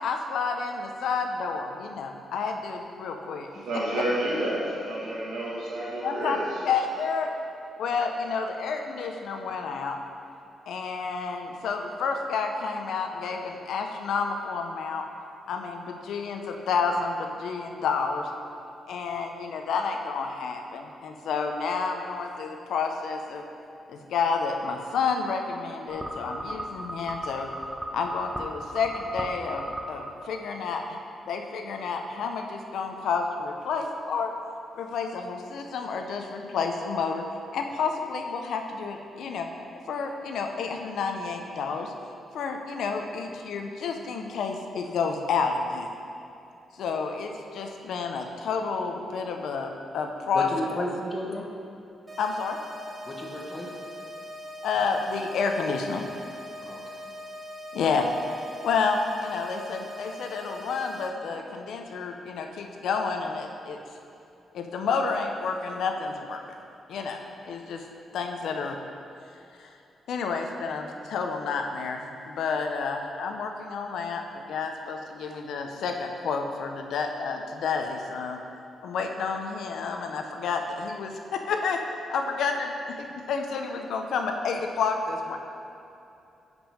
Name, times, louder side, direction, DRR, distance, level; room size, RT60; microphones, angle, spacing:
voice 1, 0.0-3.5 6.0-6.4 6.6-7.3 7.8-10.0 10.7-15.1 15.5-18.3 18.9-23.4 23.9-27.5 27.9-31.0 31.3-34.3 34.8-37.2 37.5-39.5 39.9-41.9 42.3-45.9 46.7-50.5 50.8-50.9 52.2-52.6 54.6-56.0 57.7-58.1 58.6-63.8 64.5-66.4 66.9-67.8 68.1-68.8 69.6-69.7 70.1-78.4 78.8-81.8 82.1-85.4, left 5 dB, 85° left, 4 dB, 0.6 m, -30 dB
voice 2, 3.5-6.5, right 1 dB, 80° right, -5 dB, 1.8 m, -30 dB
sound 1, 25.9-30.6, right 1 dB, 5° right, 0.5 m, -37 dB
voice 3, 50.3-51.5 53.0-53.7 56.6-57.0, left 1 dB, 25° left, -1 dB, 1.0 m, -33 dB
sound 2, 52.1-61.1, equal, 25° right, 0.9 m, -41 dB
5.8 x 5.3 x 5.5 m, 2.7 s
cardioid pair, 135°, 0 cm